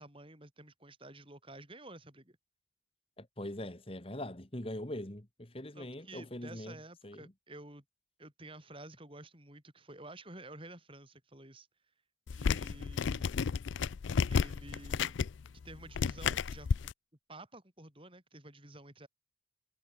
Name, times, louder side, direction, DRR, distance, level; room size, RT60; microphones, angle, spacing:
voice 1, 0.0-2.4 5.7-7.8 8.2-11.7 12.3-13.5 14.3-15.2 15.6-16.9 17.3-19.1, right 2 dB, 30° right, 7.9 m, -51 dB
voice 2, 3.2-6.7 7.0-7.2, left 1 dB, 30° left, 2.0 m, -42 dB
sound 1, 12.3-16.9, left 6 dB, 80° left, 0.4 m, -32 dB
head